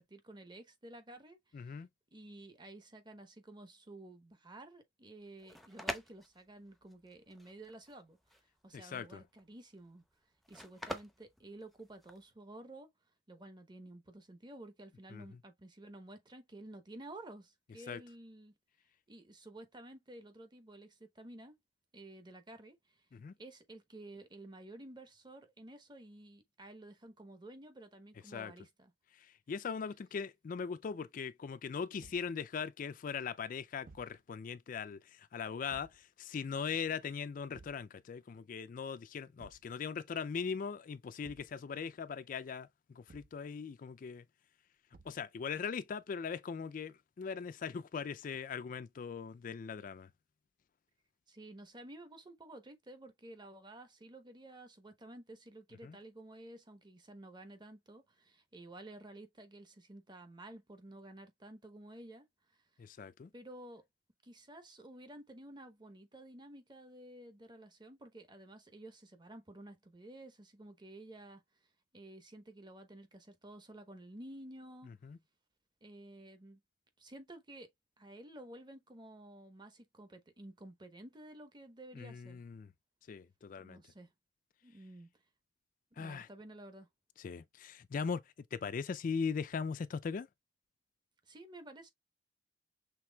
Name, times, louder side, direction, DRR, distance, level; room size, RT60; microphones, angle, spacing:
voice 1, 0.0-1.8 2.1-8.4 8.6-10.0 10.5-12.9 13.3-18.5 19.1-21.6 21.9-23.1 23.4-28.9 51.3-62.3 62.5-62.6 63.3-63.8 64.2-71.4 71.9-74.9 75.8-76.6 77.0-77.7 78.0-82.4 83.6-84.1 84.6-85.1 85.9-86.9 91.2-91.9, right 1 dB, 25° right, 0.9 m, -52 dB
voice 2, 1.5-1.9 8.7-9.2 15.1-15.2 17.9-18.0 23.1-23.3 28.3-28.5 29.2-44.2 45.1-50.1 55.8-56.0 62.8-63.3 75.0-75.2 82.0-82.7 83.1-83.8 86.0-86.3 87.2-88.2 88.5-90.3, left 6 dB, 50° left, 0.3 m, -40 dB
sound 1, 5.2-12.3, left 1 dB, ahead, 0.6 m, -46 dB
Thump thud, 32.0-32.3 33.8-34.2 35.7-36.0 37.5-37.9 39.4-39.7 41.2-41.6 43.1-43.4 44.9-45.3, right 3 dB, 50° right, 0.6 m, -57 dB
5.9 x 3.4 x 2.2 m
head